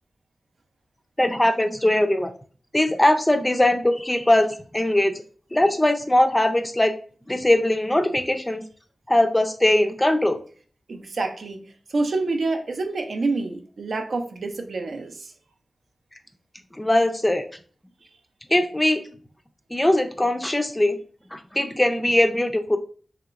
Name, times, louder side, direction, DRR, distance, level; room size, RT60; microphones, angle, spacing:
voice 1, 1.2-2.3 2.7-5.2 5.5-6.9 7.3-8.6 9.1-10.4 16.8-17.4 18.5-19.0 19.7-21.0 21.3-22.8, left 1 dB, 15° left, 6 dB, 0.4 m, -20 dB
voice 2, 10.9-11.6 11.9-15.3, right 3 dB, 65° right, 6 dB, 0.4 m, -27 dB
3.0 x 2.8 x 2.4 m, 0.42 s
wide cardioid pair, 90°, 0 cm